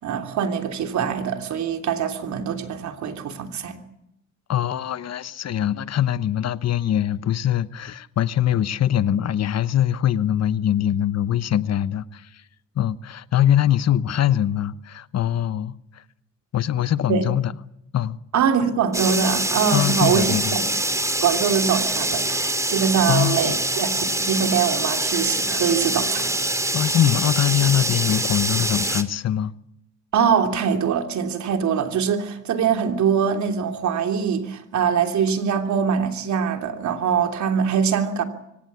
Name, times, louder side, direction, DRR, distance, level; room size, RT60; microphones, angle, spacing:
voice 1, 0.0-3.8 17.1-17.2 18.3-20.4 21.2-26.3 30.1-38.2, right 7 dB, 70° right, 3.3 m, -23 dB
voice 2, 4.5-12.3 12.8-16.0 16.5-17.5 17.9-18.2 19.7-20.6 23.1-23.6 26.7-29.5, left 11 dB, 60° left, 1.0 m, -22 dB
sound 1, 18.9-29.0, right 1 dB, 10° right, 2.4 m, -24 dB
24.5 x 17.5 x 8.4 m
cardioid pair, 90°, 30 cm